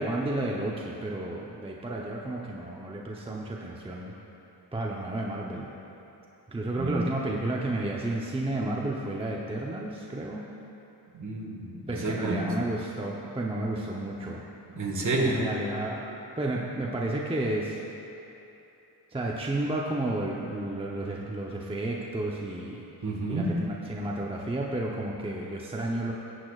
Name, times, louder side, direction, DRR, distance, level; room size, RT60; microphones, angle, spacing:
voice 1, 0.0-4.1 4.7-5.7 6.5-10.4 11.9-14.4 15.2-16.1 16.4-17.8 19.1-22.8 23.3-26.1, right 2 dB, 15° right, -3 dB, 0.8 m, -32 dB
voice 2, 11.1-12.5 14.7-15.5 23.0-23.5, right 2 dB, 45° right, -1 dB, 1.8 m, -29 dB
17.0 x 8.4 x 2.5 m, 3.0 s
cardioid pair, 80°, 41 cm